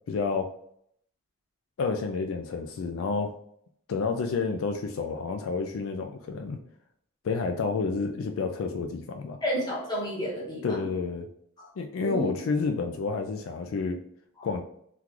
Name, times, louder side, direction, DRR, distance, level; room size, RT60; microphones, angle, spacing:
voice 1, 0.1-0.5 1.8-3.3 3.9-6.6 7.2-9.4 10.6-11.3 11.8-14.0 14.4-14.6, left 4 dB, 75° left, 6 dB, 0.3 m, -29 dB
voice 2, 9.4-10.9 11.6-11.7 12.0-12.3 14.4-14.5, equal, 20° left, -5 dB, 1.2 m, -31 dB
3.7 x 2.3 x 2.9 m, 0.69 s
head